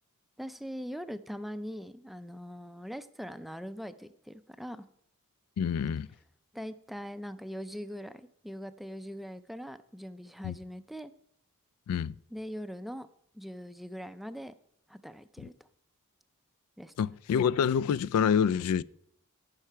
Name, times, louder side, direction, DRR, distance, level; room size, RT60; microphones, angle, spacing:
voice 1, 0.4-4.9 6.5-11.1 12.3-13.1 13.3-14.5 14.9-15.5 16.8-16.9, equal, ahead, 0.3 m, -41 dB
voice 2, 5.6-6.1 10.4-10.5 11.9-12.1 17.0-18.8, left 7 dB, 80° left, 0.3 m, -27 dB
14.5 x 5.8 x 4.5 m
head